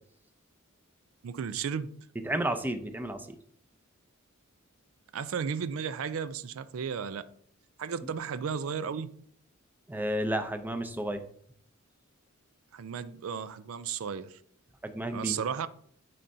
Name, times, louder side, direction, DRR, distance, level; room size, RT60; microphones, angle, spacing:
voice 1, 1.2-1.9 5.1-7.2 7.8-9.1 12.7-14.4 15.1-15.7, right 7 dB, 80° right, 0.4 m, -34 dB
voice 2, 2.2-3.3 8.0-8.1 9.9-11.2 14.8-15.4, right 1 dB, 10° right, 0.5 m, -32 dB
10.5 x 4.3 x 2.7 m
head